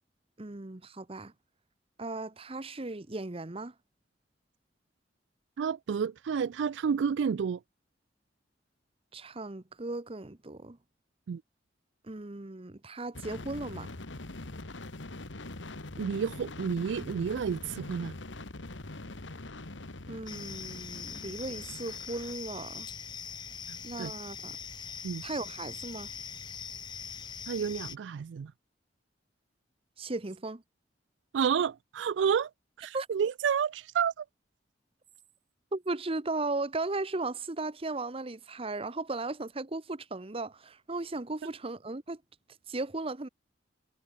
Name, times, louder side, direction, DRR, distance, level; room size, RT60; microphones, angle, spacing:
voice 1, 0.4-1.3 2.0-3.7 9.1-10.8 12.0-13.9 20.1-22.9 23.8-24.6 25.2-26.1 30.0-30.6 32.9-33.1 35.7-42.2 42.7-43.3, right 2 dB, 30° right, 1.0 m, -36 dB
voice 2, 5.6-7.6 11.3-11.4 16.0-18.1 23.7-24.1 25.0-25.2 27.5-28.5 31.3-32.5 32.8-34.3 41.4-41.5, right 7 dB, 75° right, 0.4 m, -30 dB
sound 1, 13.1-22.3, left 2 dB, 90° left, 1.9 m, -43 dB
sound 2, 20.3-28.0, left 6 dB, 25° left, 0.9 m, -42 dB
head